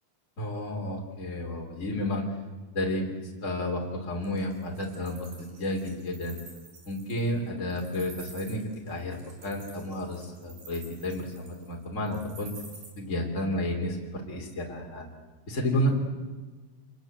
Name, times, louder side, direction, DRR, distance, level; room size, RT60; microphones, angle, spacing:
voice 1, 0.4-2.3 2.7-3.1 3.4-6.4 6.9-12.5 13.0-15.0 15.5-15.9, left 1 dB, 20° left, -1 dB, 3.4 m, -31 dB
Wild animals, 4.2-12.9, right 3 dB, 75° right, 7.7 m, -49 dB
28.5 x 21.5 x 8.0 m, 1.4 s
omnidirectional pair, 4.0 m